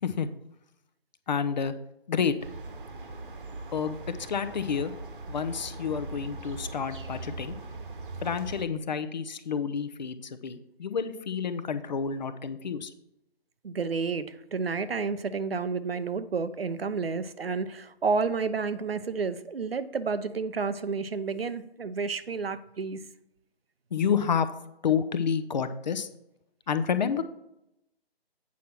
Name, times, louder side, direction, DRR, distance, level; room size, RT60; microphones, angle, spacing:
voice 1, 1.3-1.7 2.1-2.3 3.7-4.0 4.3-4.9 5.3-7.6 8.2-12.9 23.9-24.5 24.8-26.1 26.7-27.2, left 6 dB, 50° left, 11 dB, 0.6 m, -29 dB
sound 1, 2.4-8.6, right 3 dB, 60° right, 1.1 m, -40 dB
voice 2, 13.6-23.0, right 4 dB, 75° right, 13 dB, 0.7 m, -30 dB
8.4 x 5.6 x 4.5 m, 0.82 s
figure-of-eight pair, 140°, 30 cm